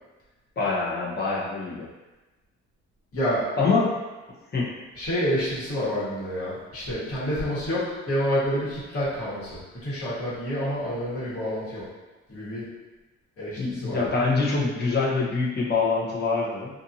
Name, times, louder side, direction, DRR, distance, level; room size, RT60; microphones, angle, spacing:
voice 1, 0.6-1.9 3.6-3.9 4.5-4.7 13.6-16.7, left 4 dB, 35° left, -5 dB, 0.9 m, -25 dB
voice 2, 3.1-3.4 4.9-11.8 12.3-12.7 13.4-14.1, equal, 50° left, -9 dB, 1.5 m, -28 dB
2.7 x 2.6 x 2.6 m, 1.1 s
cardioid pair, 90°, 30 cm